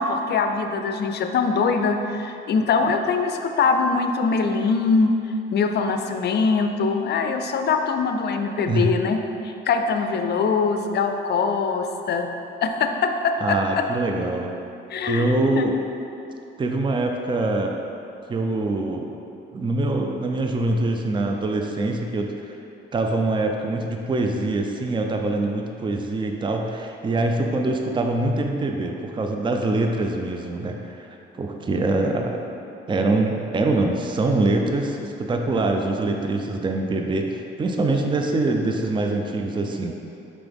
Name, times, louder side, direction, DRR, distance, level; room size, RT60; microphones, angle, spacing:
voice 1, 0.0-5.1 5.5-9.2 9.4-12.3 12.6-13.8 14.9-15.2 15.6-15.7 31.7-32.0, left 4 dB, 55° left, 6 dB, 0.5 m, -23 dB
voice 2, 13.4-14.5 15.0-15.8 16.6-17.8 18.3-19.1 19.5-22.6 22.9-32.4 32.9-40.0, right 2 dB, 25° right, 3 dB, 0.5 m, -24 dB
5.9 x 4.7 x 3.5 m, 2.9 s
cardioid pair, 90°, 20 cm